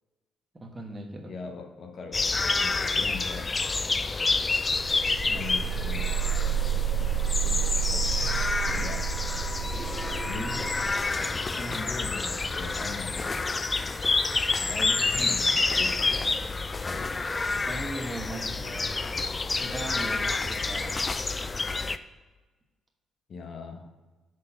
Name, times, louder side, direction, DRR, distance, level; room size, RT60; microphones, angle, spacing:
voice 1, 0.5-1.3 17.7-18.9 19.6-21.0, right 2 dB, 25° right, 1 dB, 1.3 m, -38 dB
voice 2, 1.2-3.6 5.2-6.1 7.4-8.1 8.4-9.2 10.3-10.7 11.5-13.5 14.2-16.3 16.9-17.3 23.3-23.9, left 4 dB, 55° left, 4 dB, 1.0 m, -40 dB
sound 1, 2.1-22.0, left 3 dB, 30° left, 0.4 m, -28 dB
sound 2, 4.7-14.4, right 10 dB, 55° right, 1.5 m, -31 dB
sound 3, 9.7-14.9, equal, 10° right, 1.6 m, -45 dB
6.3 x 4.0 x 5.6 m, 1.3 s
supercardioid pair, 60°, 0 cm